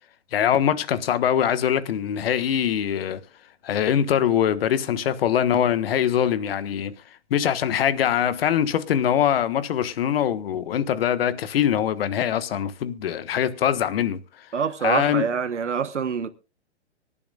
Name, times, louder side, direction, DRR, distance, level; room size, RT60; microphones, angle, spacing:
voice 1, 0.3-3.2 3.6-6.9 7.3-14.2 14.8-15.3, left 9 dB, 55° left, 1.4 m, -23 dB
voice 2, 14.5-16.3, right 6 dB, 85° right, 1.2 m, -25 dB
24.5 x 11.5 x 2.4 m
hypercardioid pair, 125°, 34 cm